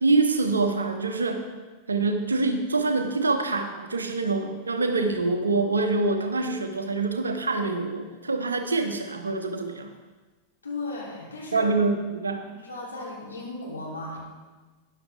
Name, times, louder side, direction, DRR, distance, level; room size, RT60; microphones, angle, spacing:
voice 1, 0.0-1.5 1.9-9.9 11.5-12.5, right 3 dB, 75° right, 7 dB, 1.0 m, -25 dB
voice 2, 10.6-11.7 12.6-14.2, left 2 dB, 80° left, -4 dB, 3.1 m, -35 dB
13.0 x 10.0 x 3.4 m, 1.3 s
figure-of-eight pair, 90°, 0 cm